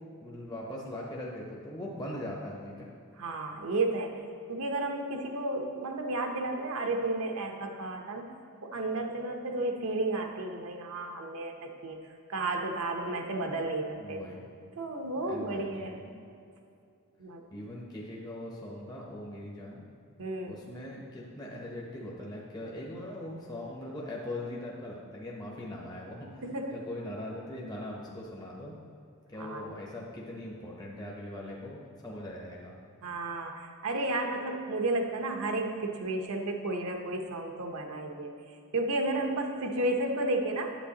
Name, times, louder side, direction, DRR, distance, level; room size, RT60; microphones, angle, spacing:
voice 1, 0.2-2.9 14.0-14.4 15.3-15.9 17.5-19.8 20.5-26.4 26.7-28.8 29.3-32.7, left 1 dB, 20° left, -3 dB, 0.8 m, -40 dB
voice 2, 3.2-4.2 4.5-8.3 8.6-12.0 12.3-14.2 14.7-16.1 17.2-17.4 20.2-20.6 26.4-26.8 29.3-29.6 33.0-38.3 38.7-40.8, right 2 dB, 65° right, 3 dB, 0.8 m, -32 dB
9.1 x 7.8 x 2.8 m, 2.5 s
head